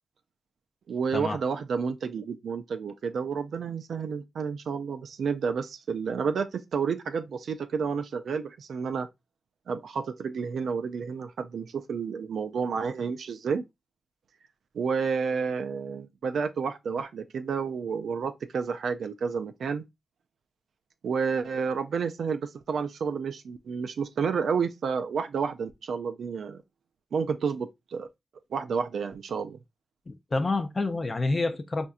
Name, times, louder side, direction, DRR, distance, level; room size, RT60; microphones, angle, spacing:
voice 1, 0.9-9.1 9.7-13.7 14.7-19.8 21.0-26.6 27.1-28.1 28.5-29.6, right 6 dB, 85° right, 0.4 m, -30 dB
voice 2, 30.1-31.9, left 3 dB, 45° left, 0.5 m, -28 dB
4.3 x 2.5 x 2.3 m
cardioid pair, 45°, 0 cm